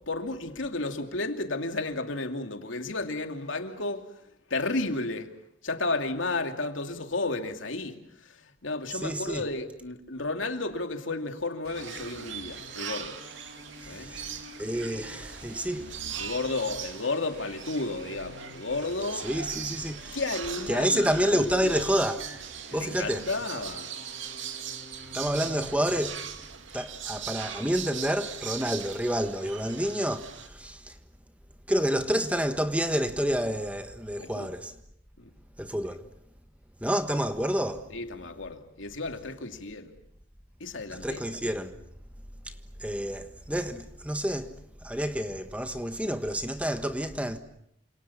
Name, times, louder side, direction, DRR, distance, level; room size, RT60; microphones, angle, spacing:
voice 1, 0.0-4.1 4.5-5.3 5.6-13.2 13.9-14.1 16.2-19.3 20.1-21.7 22.7-23.9 34.2-34.5 35.2-35.3 37.9-39.9 40.6-41.2, left 2 dB, 80° left, 2.7 m, -32 dB
voice 2, 9.0-9.4 13.9-16.0 19.2-20.2 20.7-22.3 22.7-23.2 25.1-26.3 26.7-30.9 31.7-34.7 35.6-36.0 36.8-37.9 40.9-41.7 42.8-44.5 44.8-47.4, equal, 5° right, 1.4 m, -29 dB
sound 1, 11.6-26.0, right 1 dB, 55° right, 6.0 m, -48 dB
sound 2, 11.7-30.5, right 8 dB, 75° right, 2.4 m, -40 dB
28.5 x 27.0 x 7.2 m
head